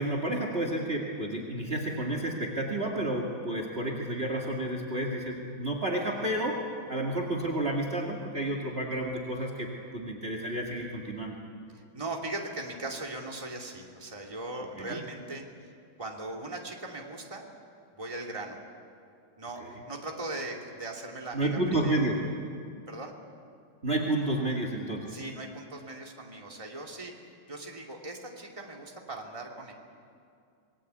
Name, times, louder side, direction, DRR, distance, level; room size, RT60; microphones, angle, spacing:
voice 1, 0.0-11.3 14.8-15.0 19.6-19.7 21.3-22.2 23.8-25.2, right 1 dB, 30° right, 1 dB, 2.4 m, -31 dB
voice 2, 11.7-15.7 16.0-17.5 17.9-18.6 19.4-22.1 22.9-23.1 25.1-27.1 27.5-29.7, right 2 dB, 15° right, 0 dB, 2.7 m, -39 dB
27.0 x 21.0 x 8.2 m, 2.4 s
omnidirectional pair, 2.1 m